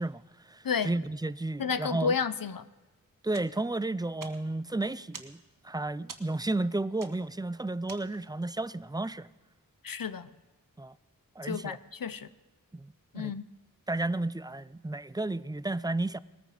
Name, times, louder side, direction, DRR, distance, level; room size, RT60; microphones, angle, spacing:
voice 1, 0.0-2.2 3.2-5.4 5.6-9.3 10.8-11.0 11.4-11.8 12.7-13.3 13.9-16.2, right 2 dB, 10° right, 0.5 m, -32 dB
voice 2, 1.6-2.6 9.8-10.3 11.4-12.3 13.1-13.5, left 6 dB, 70° left, 0.8 m, -31 dB
sound 1, 3.3-8.5, right 4 dB, 65° right, 1.5 m, -50 dB
20.0 x 14.0 x 5.0 m
wide cardioid pair, 55°, 35 cm